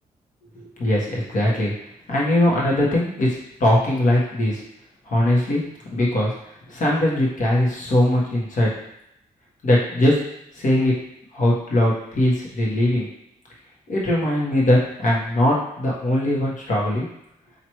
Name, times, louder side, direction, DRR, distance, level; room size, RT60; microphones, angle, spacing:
voice 1, 0.5-1.7 2.1-4.6 5.1-5.6 5.9-6.3 6.7-8.7 9.6-10.2 10.5-10.9 11.3-13.1 13.9-17.1, left 1 dB, 60° left, -4 dB, 1.5 m, -20 dB
4.5 x 2.9 x 3.1 m, 0.80 s
cardioid pair, 75°, 15 cm